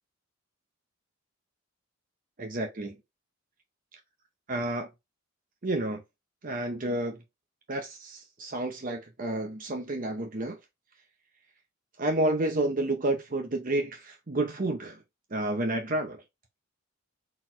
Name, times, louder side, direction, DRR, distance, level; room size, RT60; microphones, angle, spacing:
voice 1, 2.4-3.0 4.5-4.9 5.6-6.0 6.4-7.2 7.7-10.6 12.0-15.0 15.3-16.2, right 1 dB, 40° right, 0.7 m, -30 dB
4.3 x 4.0 x 2.5 m
head